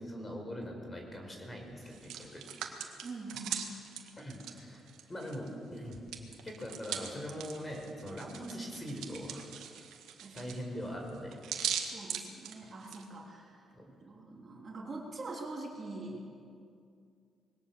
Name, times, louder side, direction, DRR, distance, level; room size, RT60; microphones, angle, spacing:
voice 1, 0.0-2.4 4.2-4.8 5.1-6.0 6.4-9.5 10.3-11.4 13.7-13.9, equal, 20° left, 2 dB, 4.8 m, -41 dB
Hands, 1.8-5.5 5.8-13.0, right 9 dB, 85° right, 1.9 m, -41 dB
voice 2, 3.0-3.7 10.2-10.5 11.8-13.7 14.0-16.3, right 2 dB, 40° right, -2 dB, 3.4 m, -44 dB
21.5 x 17.5 x 7.0 m, 2.4 s
cardioid pair, 90°, 0 cm